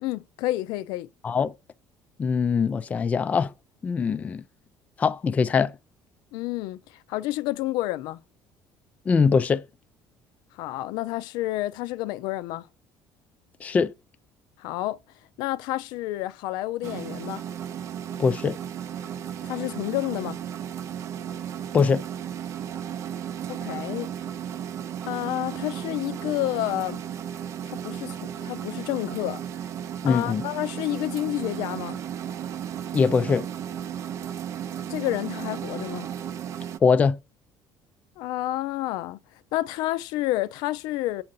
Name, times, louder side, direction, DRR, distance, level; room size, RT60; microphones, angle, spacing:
voice 1, 0.0-1.1 6.3-8.2 10.5-12.7 14.6-15.0 15.4-17.4 19.4-20.4 23.5-24.1 25.1-27.0 27.6-29.7 30.0-32.0 34.9-36.1 38.2-39.2 39.5-41.2, left 16 dB, 80° left, 0.5 m, -30 dB
voice 2, 2.2-3.5 3.8-4.4 5.0-5.7 9.1-9.6 13.6-13.9 18.2-18.6 21.7-22.0 30.0-30.4 32.9-33.5 36.8-37.2, left 5 dB, 20° left, 0.3 m, -22 dB
sound 1, 16.8-36.8, right 9 dB, 45° right, 0.5 m, -34 dB
7.6 x 2.6 x 5.4 m
cardioid pair, 160°, 7 cm